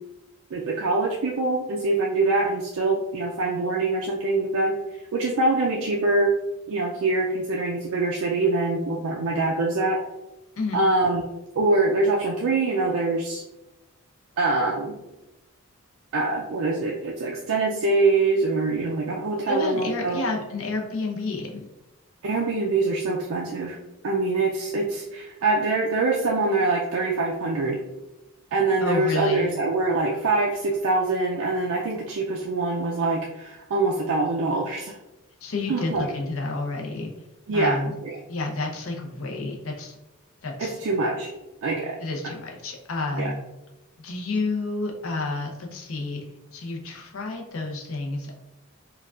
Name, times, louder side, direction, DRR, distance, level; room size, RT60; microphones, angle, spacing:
voice 1, 0.5-6.3 6.7-10.0 10.7-11.2 11.5-13.4 14.4-15.0 16.1-20.2 22.2-23.8 24.0-27.8 28.5-35.0 35.7-36.1 37.5-38.1 40.6-41.3 41.6-42.0 43.1-43.3, right 3 dB, 70° right, -2 dB, 0.4 m, -24 dB
voice 2, 19.5-21.6 28.8-29.5 35.4-37.1 37.5-38.0 38.3-40.0 40.4-40.7 42.0-43.4 44.0-46.2 46.5-48.4, left 3 dB, 65° left, 1 dB, 0.6 m, -30 dB
4.5 x 2.3 x 2.4 m, 0.96 s
head